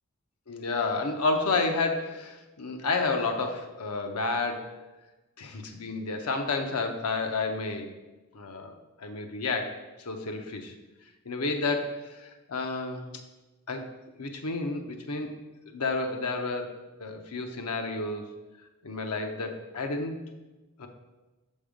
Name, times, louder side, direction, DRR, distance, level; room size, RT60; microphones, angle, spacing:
voice 1, 0.5-4.8 5.4-7.9 8.3-10.7 11.3-13.1 13.7-13.9 14.2-15.3 15.7-18.3 18.8-20.2 20.8-20.9, left 3 dB, 90° left, 5 dB, 0.7 m, -31 dB
5.3 x 5.2 x 5.0 m, 1.1 s
head